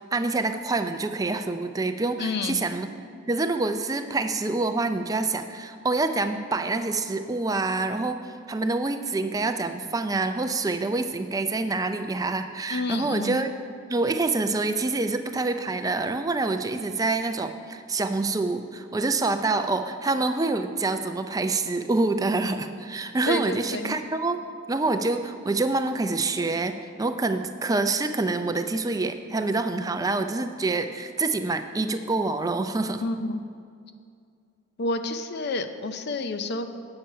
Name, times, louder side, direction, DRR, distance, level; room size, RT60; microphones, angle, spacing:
voice 1, 0.0-2.9 3.3-13.5 13.9-24.4 24.7-33.0, right 3 dB, 15° right, 8 dB, 0.4 m, -26 dB
voice 2, 2.2-2.6 12.7-13.4 23.3-23.9 33.0-33.4 34.8-36.7, left 2 dB, 55° left, 9 dB, 0.5 m, -29 dB
8.8 x 7.2 x 5.4 m, 2.3 s
head